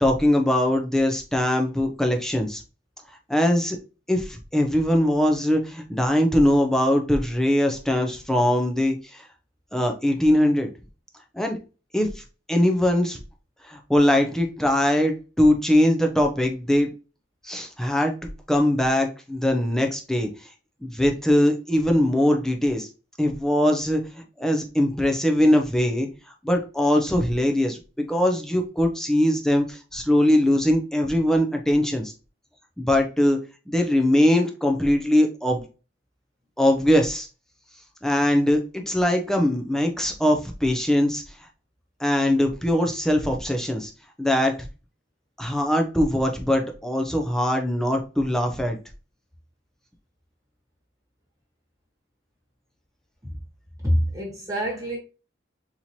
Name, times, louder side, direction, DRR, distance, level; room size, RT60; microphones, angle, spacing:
voice 1, 0.0-2.6 3.3-3.8 4.1-9.3 9.7-10.7 11.3-11.6 11.9-12.2 12.5-13.2 13.6-16.9 17.4-20.3 20.8-22.9 23.2-24.0 24.4-26.1 26.4-32.1 32.8-33.4 33.7-35.6 36.6-37.3 38.0-41.2 42.0-43.9 44.2-44.5 45.4-48.8, left 1 dB, 5° left, 0.5 m, -21 dB
voice 2, 53.8-55.0, equal, 20° right, 1.4 m, -25 dB
4.3 x 2.9 x 2.7 m
head